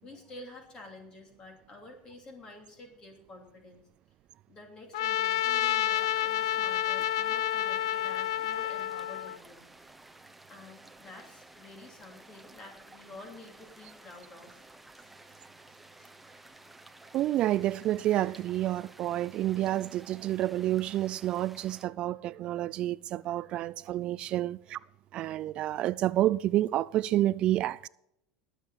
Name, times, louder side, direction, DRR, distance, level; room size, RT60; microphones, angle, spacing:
voice 1, 0.0-3.8 4.5-9.7 10.5-14.6 15.0-15.1 16.0-16.2 24.2-24.3, left 2 dB, 30° left, 3.0 m, -49 dB
Trumpet, 4.9-9.4, left 12 dB, 85° left, 0.5 m, -29 dB
sound 1, 5.9-21.9, right 2 dB, 5° right, 0.9 m, -54 dB
voice 2, 17.1-24.8 25.1-27.9, right 14 dB, 45° right, 0.3 m, -29 dB
19.0 x 7.9 x 4.1 m
supercardioid pair, 125°, 2 cm